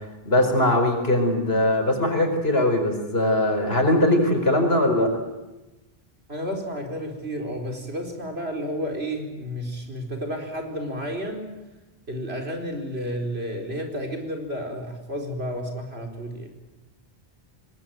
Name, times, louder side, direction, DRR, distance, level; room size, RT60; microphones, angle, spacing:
voice 1, 0.2-5.1, left 1 dB, 65° left, 5 dB, 5.0 m, -21 dB
voice 2, 6.3-11.6 12.1-16.5, equal, 70° right, 3 dB, 4.6 m, -31 dB
26.5 x 20.0 x 9.3 m, 1.0 s
omnidirectional pair, 1.1 m